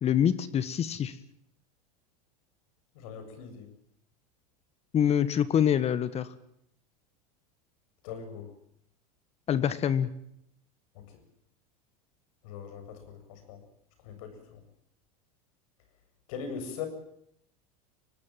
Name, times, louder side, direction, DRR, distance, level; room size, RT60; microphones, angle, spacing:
voice 1, 0.0-1.2 4.9-6.3 9.5-10.1, left 9 dB, 35° left, 15 dB, 1.5 m, -25 dB
voice 2, 2.9-3.7 8.0-8.5 10.9-11.0 12.4-13.6 14.0-14.6 16.3-16.9, left 6 dB, 70° left, 9 dB, 7.5 m, -40 dB
25.0 x 19.0 x 7.5 m, 0.73 s
hypercardioid pair, 105°, 19 cm